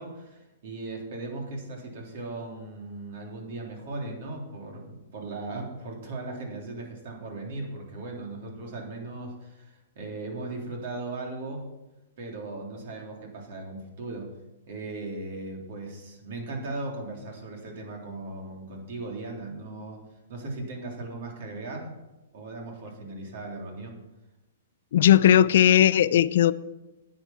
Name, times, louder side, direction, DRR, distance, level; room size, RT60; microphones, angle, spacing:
voice 1, 0.0-11.7 12.2-14.3 14.7-20.0 20.3-22.0 22.3-24.0, right 2 dB, 55° right, 0 dB, 3.4 m, -37 dB
voice 2, 24.9-26.5, left 11 dB, 60° left, 16 dB, 0.5 m, -18 dB
10.5 x 8.3 x 5.9 m, 1.0 s
hypercardioid pair, 150°, 0 cm